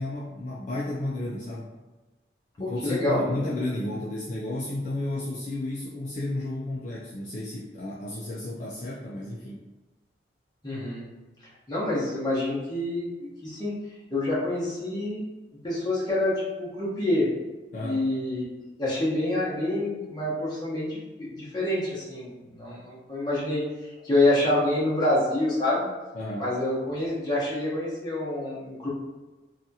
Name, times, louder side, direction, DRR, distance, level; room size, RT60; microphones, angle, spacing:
voice 1, 0.0-1.7 2.6-9.7 17.7-18.0 26.1-26.5, left 1 dB, 45° left, -5 dB, 0.3 m, -32 dB
voice 2, 2.6-3.4 10.6-11.1 11.7-13.8 14.1-15.2 15.6-17.3 17.8-18.5 18.8-23.6 24.0-25.9 26.4-28.9, left 1 dB, 25° left, -7 dB, 0.8 m, -27 dB
2.7 x 2.3 x 2.7 m, 1.2 s
head